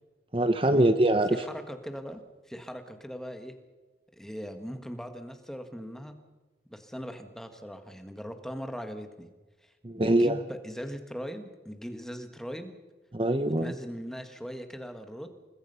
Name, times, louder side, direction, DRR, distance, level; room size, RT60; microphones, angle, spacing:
voice 1, 0.3-1.5 9.8-10.4 13.1-13.7, right 1 dB, 30° right, 9 dB, 0.9 m, -23 dB
voice 2, 1.3-3.6 4.2-6.2 6.7-9.3 9.6-12.7 13.4-15.3, equal, 5° left, 7 dB, 1.7 m, -40 dB
29.5 x 20.5 x 5.6 m, 1.2 s
head